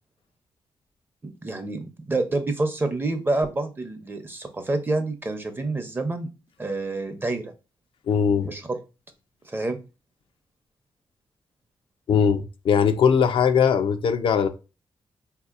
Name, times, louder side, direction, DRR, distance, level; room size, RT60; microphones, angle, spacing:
voice 1, 1.2-6.3 6.6-7.5 8.4-8.8 9.4-9.8, right 2 dB, 25° right, 0.6 m, -28 dB
voice 2, 8.1-8.5 12.1-14.5, left 7 dB, 75° left, 0.4 m, -20 dB
3.8 x 2.8 x 2.4 m
cardioid pair, 95°, 9 cm